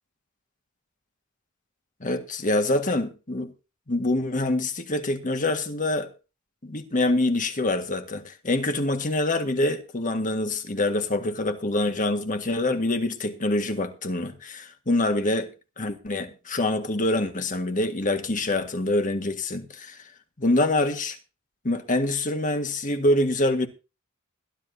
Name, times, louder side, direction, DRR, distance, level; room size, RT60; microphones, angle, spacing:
voice 1, 2.0-3.5 3.9-6.1 6.6-15.5 15.8-20.1 20.4-21.2 21.6-23.7, left 2 dB, 40° left, 1.7 m, -25 dB
21.0 x 12.5 x 2.7 m
head